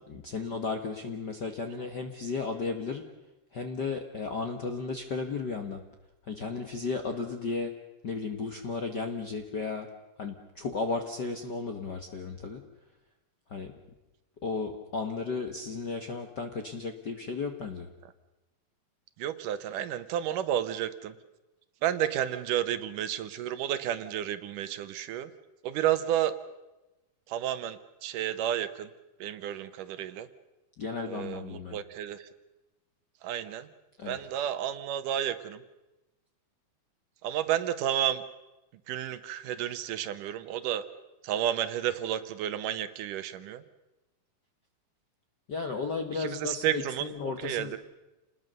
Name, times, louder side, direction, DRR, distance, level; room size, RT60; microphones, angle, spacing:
voice 1, 0.1-3.0 3.5-5.8 6.3-7.7 8.0-9.9 10.2-12.6 13.5-13.7 14.4-17.9 30.8-31.8 34.0-34.2 45.5-47.8, left 4 dB, 55° left, 5 dB, 1.2 m, -34 dB
voice 2, 19.2-21.2 21.8-25.3 25.6-26.4 27.3-28.9 29.2-30.3 31.1-32.3 33.2-33.7 34.1-35.6 37.2-38.2 38.9-40.9 41.2-43.6 46.1-47.8, right 11 dB, 80° right, 12 dB, 2.6 m, -31 dB
28.5 x 20.0 x 6.7 m, 1.0 s
omnidirectional pair, 3.8 m